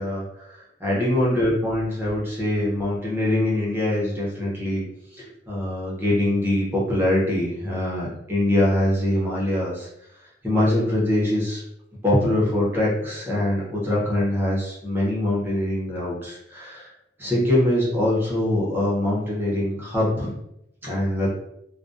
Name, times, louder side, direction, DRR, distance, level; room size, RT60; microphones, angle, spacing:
voice 1, 0.0-4.8 5.1-9.9 10.4-11.6 12.0-16.9 17.2-20.3 20.8-21.3, left 1 dB, 10° right, -6 dB, 0.7 m, -23 dB
2.3 x 2.2 x 2.5 m, 0.80 s
head